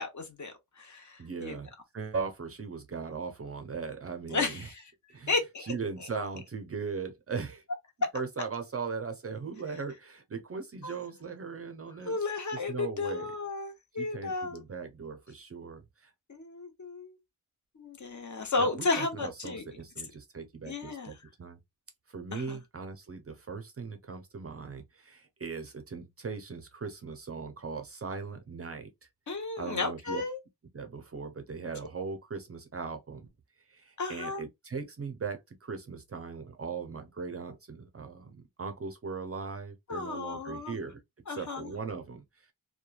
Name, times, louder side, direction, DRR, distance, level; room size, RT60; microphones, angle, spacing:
voice 1, 0.0-1.6 4.3-4.8 5.3-5.7 10.8-11.0 12.1-14.6 16.3-17.2 17.8-19.6 20.7-21.1 22.3-22.6 29.3-30.4 34.0-34.4 39.9-40.8 41.3-41.7, left 3 dB, 45° left, 0.8 m, -33 dB
voice 2, 1.2-4.7 5.1-5.3 5.6-7.6 8.1-12.2 12.5-13.3 13.9-16.1 18.6-21.6 22.1-28.9 29.6-30.2 30.7-33.3 33.7-41.0 41.3-42.5, right 5 dB, 35° right, 0.5 m, -39 dB
3.0 x 2.2 x 2.3 m
wide cardioid pair, 145°, 40 cm